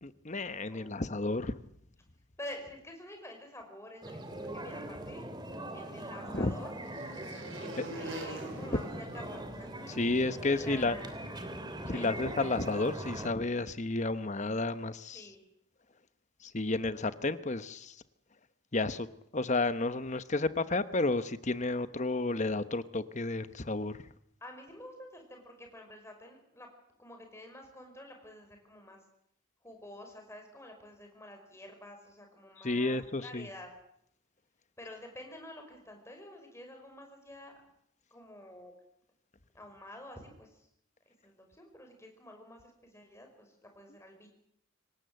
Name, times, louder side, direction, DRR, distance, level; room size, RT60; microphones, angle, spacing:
voice 1, 0.0-1.5 4.6-4.7 6.3-6.5 7.8-7.9 10.0-11.0 11.8-15.2 16.4-17.9 18.7-19.1 19.3-24.0 32.6-33.5, left 2 dB, 35° left, 13 dB, 1.0 m, -31 dB
voice 2, 0.7-1.0 2.4-5.3 5.7-6.7 7.5-10.0 10.4-11.1 11.9-12.1 15.1-15.4 24.4-26.7 27.0-29.0 29.6-33.7 34.8-37.5 38.1-38.7 39.5-40.7 41.2-44.3, left 1 dB, 15° left, 3 dB, 5.5 m, -49 dB
sound 1, 4.0-13.3, right 1 dB, 20° right, 2.8 m, -41 dB
sound 2, 5.2-9.9, right 1 dB, 65° right, 5.6 m, -46 dB
25.5 x 18.5 x 7.9 m, 0.72 s
head